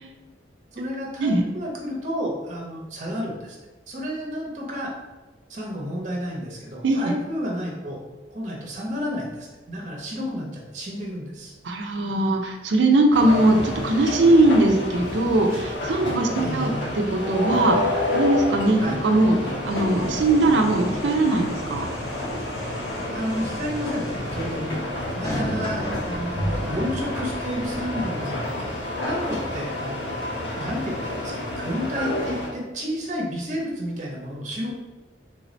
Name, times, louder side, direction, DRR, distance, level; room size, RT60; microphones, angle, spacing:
voice 1, 0.7-3.6 3.9-4.9 5.5-8.0 8.3-11.5 16.3-16.8 18.8-19.0 23.1-24.9 25.2-28.3 29.0-30.2 30.6-34.7, equal, 40° right, -3 dB, 0.7 m, -31 dB
voice 2, 6.8-7.1 11.6-21.9, right 2 dB, 75° right, 3 dB, 0.5 m, -20 dB
sound 1, 13.1-32.5, left 1 dB, 85° left, 1.1 m, -29 dB
sound 2, 19.6-27.9, equal, 20° left, 0.6 m, -35 dB
3.3 x 2.6 x 3.1 m, 1.2 s
head